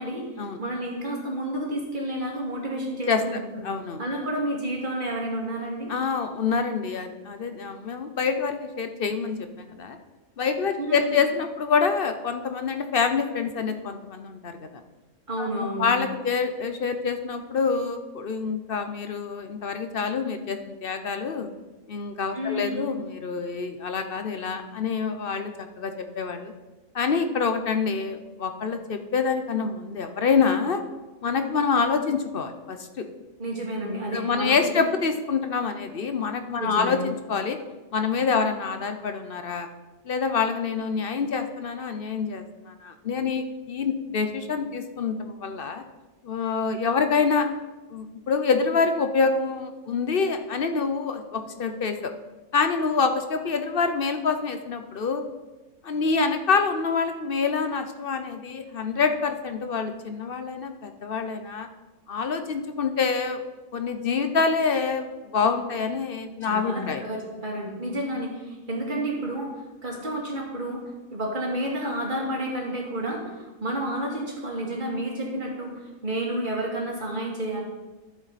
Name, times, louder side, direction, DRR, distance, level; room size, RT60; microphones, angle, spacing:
voice 1, 0.6-3.4 4.0-5.9 10.8-11.2 15.3-15.9 22.3-22.9 33.4-34.8 36.6-36.9 66.5-77.6, right 1 dB, 35° right, -2 dB, 2.4 m, -30 dB
voice 2, 3.6-4.0 5.9-10.0 10.4-14.8 15.4-21.5 21.9-26.5 26.9-30.8 31.2-33.1 34.1-37.6 37.9-39.7 40.0-45.8 46.2-47.5 47.9-52.1 52.5-55.2 55.8-61.7 62.1-63.4 63.7-67.0, left 5 dB, 50° left, 7 dB, 0.8 m, -26 dB
11.5 x 7.5 x 4.1 m, 1.2 s
omnidirectional pair, 1.4 m